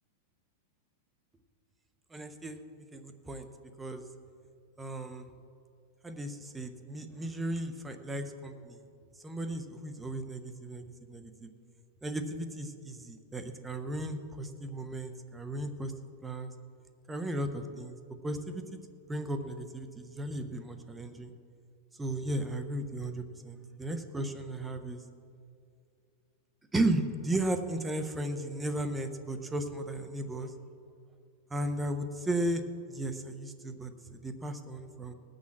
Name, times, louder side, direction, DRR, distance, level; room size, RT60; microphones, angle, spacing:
voice 1, 2.1-2.6 2.9-3.5 3.8-4.0 4.8-5.3 6.0-8.8 9.2-11.5 12.0-15.9 16.2-16.5 17.1-18.0 18.2-18.6 19.1-21.3 22.0-25.0 26.7-30.5 31.5-32.6 32.9-35.1, right 1 dB, 10° right, 8 dB, 0.9 m, -35 dB
18.0 x 6.5 x 7.3 m, 2.4 s
supercardioid pair, 145°, 0 cm